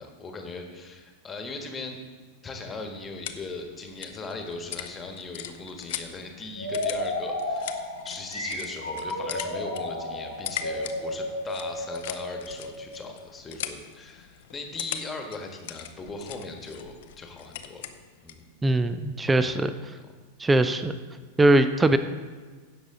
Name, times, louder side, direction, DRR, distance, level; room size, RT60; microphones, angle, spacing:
voice 1, 0.0-2.0 2.4-18.0 18.2-18.4 19.2-19.6 20.8-20.9, left 3 dB, 20° left, 4 dB, 1.4 m, -39 dB
sound 1, 2.9-18.5, left 11 dB, 55° left, 0.6 m, -41 dB
sound 2, 6.6-13.3, left 1 dB, 90° right, 1.6 m, -32 dB
voice 2, 18.6-19.7 20.4-21.0 21.4-22.0, right 2 dB, 10° right, 11 dB, 0.5 m, -21 dB
16.0 x 6.1 x 3.7 m, 1.4 s
figure-of-eight pair, 90°, 0 cm